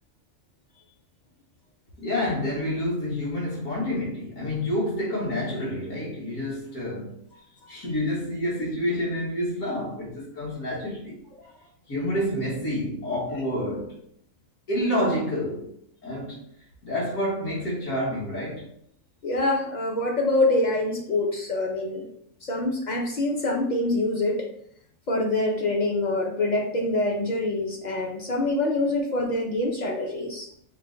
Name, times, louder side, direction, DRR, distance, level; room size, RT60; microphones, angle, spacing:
voice 1, 2.0-7.2 7.7-11.1 11.9-13.9 14.7-15.8 16.0-16.4 16.8-18.7, left 1 dB, 80° left, 1.9 m, -28 dB
voice 2, 19.2-22.1 22.4-24.5 25.1-30.5, left 2 dB, 50° left, 0.5 m, -25 dB
5.6 x 2.1 x 3.8 m
omnidirectional pair, 1.4 m